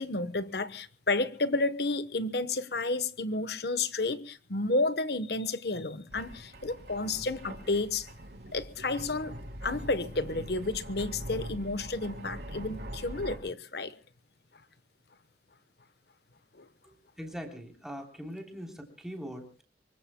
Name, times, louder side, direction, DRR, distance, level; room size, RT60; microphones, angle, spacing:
voice 1, 0.0-8.1 8.5-9.4 9.6-14.0 16.5-16.7, left 2 dB, 60° left, 1.0 m, -31 dB
sound 1, 6.1-13.4, right 1 dB, 60° right, 3.5 m, -42 dB
voice 2, 16.8-19.6, equal, 5° right, 3.3 m, -42 dB
25.0 x 23.0 x 2.2 m
head